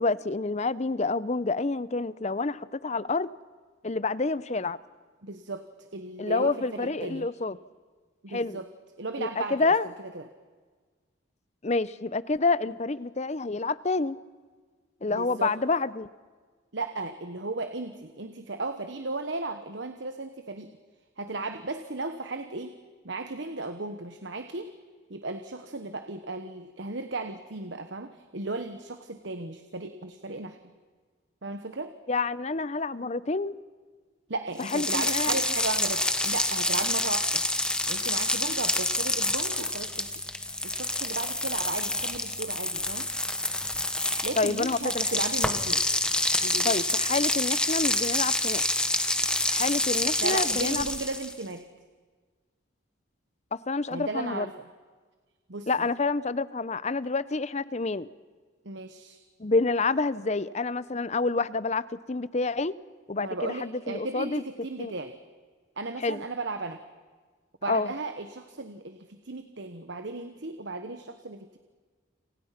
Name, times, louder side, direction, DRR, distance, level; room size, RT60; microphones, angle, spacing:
voice 1, 0.0-3.3 3.8-4.8 6.2-7.6 8.3-8.6 9.2-9.9 11.6-14.2 15.0-16.1 32.1-33.5 34.6-35.4 44.4-45.1 46.6-48.6 49.5-50.9 53.5-54.5 55.7-58.1 59.4-62.7 63.1-64.4 64.8-64.9 66.0-66.2 67.7-67.9, left 3 dB, 35° left, 17 dB, 0.7 m, -28 dB
voice 2, 5.2-7.3 8.2-8.7 9.0-9.7 10.1-10.2 15.1-15.5 16.7-20.7 21.2-22.7 23.0-24.7 25.1-30.6 31.4-31.9 34.3-37.4 37.9-40.1 40.6-43.1 44.2-45.8 46.4-46.7 50.2-51.6 53.9-54.5 55.5-55.7 58.6-59.2 63.2-65.2 65.8-66.8 67.6-71.6, right 3 dB, 60° right, 8 dB, 1.2 m, -35 dB
sound 1, 34.6-51.4, left 1 dB, 5° left, 1.2 m, -27 dB
29.5 x 27.5 x 5.9 m, 1.5 s
head